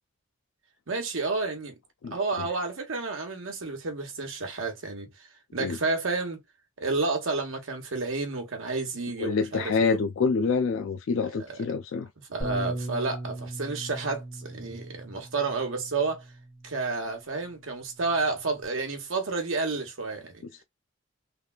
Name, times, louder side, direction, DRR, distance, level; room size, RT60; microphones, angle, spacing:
voice 1, 0.9-1.8 2.1-5.1 5.5-6.4 6.8-10.0 11.3-11.6 12.3-16.2 16.6-20.4, right 3 dB, 75° right, 1.1 m, -30 dB
voice 2, 9.2-12.1, left 5 dB, 75° left, 0.3 m, -26 dB
Bass guitar, 12.4-16.9 17.7-18.7, right 1 dB, 40° left, 1.6 m, -38 dB
3.4 x 2.3 x 2.3 m
head